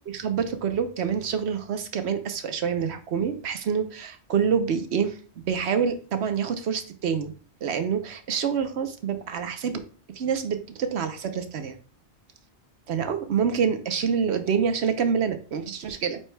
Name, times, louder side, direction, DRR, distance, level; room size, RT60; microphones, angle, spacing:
voice 1, 0.1-5.2 5.5-7.3 7.6-9.7 10.1-11.7 12.9-16.2, right 7 dB, 70° right, 9 dB, 1.0 m, -26 dB
8.8 x 4.7 x 2.3 m, 0.41 s
omnidirectional pair, 1.1 m